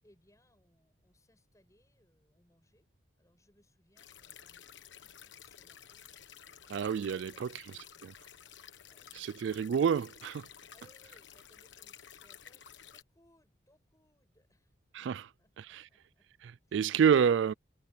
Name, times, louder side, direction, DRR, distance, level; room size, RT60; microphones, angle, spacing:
voice 1, 0.0-2.9 3.2-9.5 10.7-12.6 12.9-16.3, left 1 dB, 15° left, 7.8 m, -69 dB
sound 1, 4.0-13.0, left 9 dB, 75° left, 1.3 m, -53 dB
voice 2, 6.7-7.6 9.1-10.5 14.9-15.2 15.6-15.8 16.4-17.5, right 7 dB, 75° right, 0.3 m, -28 dB
head